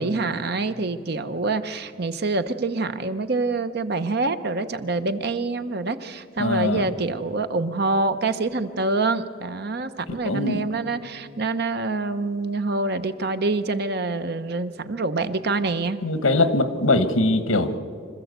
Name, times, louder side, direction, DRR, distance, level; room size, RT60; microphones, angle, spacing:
voice 1, 0.0-16.0, right 3 dB, 50° right, 10 dB, 0.9 m, -26 dB
voice 2, 6.4-6.8 10.2-10.6 16.0-17.7, left 2 dB, 85° left, 10 dB, 1.4 m, -21 dB
26.0 x 14.5 x 8.1 m, 2.2 s
head